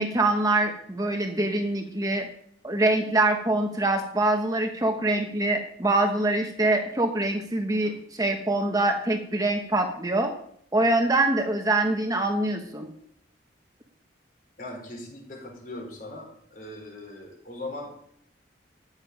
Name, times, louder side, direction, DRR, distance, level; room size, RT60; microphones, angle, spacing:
voice 1, 0.0-2.3 2.6-10.3 10.7-12.9, right 2 dB, 20° right, 4 dB, 1.1 m, -24 dB
voice 2, 14.6-17.9, left 2 dB, 50° left, 0 dB, 4.3 m, -39 dB
13.5 x 9.1 x 5.3 m, 0.66 s
head